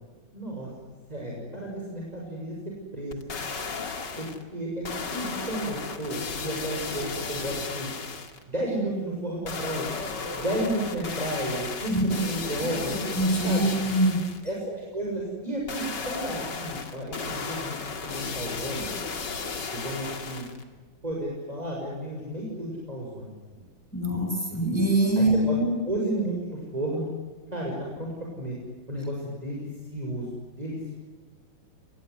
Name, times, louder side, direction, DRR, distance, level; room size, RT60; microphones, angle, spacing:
voice 1, 0.3-0.7 1.1-2.5 2.9-3.2 4.2-4.9 5.1-7.9 8.5-10.0 10.3-13.0 13.4-13.7 14.4-18.9 19.7-20.4 21.0-23.6 25.2-25.6 25.8-27.1 27.5-28.1 28.4-28.6 28.9-30.9, right 1 dB, 20° right, -3 dB, 6.9 m, -32 dB
sound 1, 3.1-4.4 4.8-8.4 9.4-14.4 15.7-20.6 21.1-21.2, left 4 dB, 60° left, 2.9 m, -34 dB
voice 2, 13.2-14.2 23.9-25.7, right 1 dB, 5° left, 2 dB, 6.2 m, -23 dB
26.5 x 21.5 x 9.8 m, 1.4 s
omnidirectional pair, 2.1 m